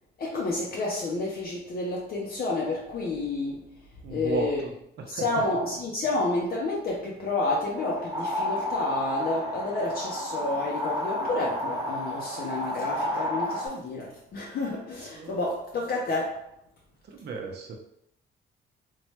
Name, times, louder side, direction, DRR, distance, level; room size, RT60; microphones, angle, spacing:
voice 1, 0.2-3.6 4.1-4.6 5.1-16.4, left 2 dB, 50° left, -2 dB, 0.6 m, -30 dB
voice 2, 4.0-4.7 5.1-5.4 15.1-15.4 17.0-17.8, right 3 dB, 55° right, 2 dB, 0.7 m, -34 dB
sound 1, 7.8-13.7, left 1 dB, 15° right, 1.1 m, -31 dB
3.0 x 2.2 x 2.9 m, 0.75 s
cardioid pair, 90°, 20 cm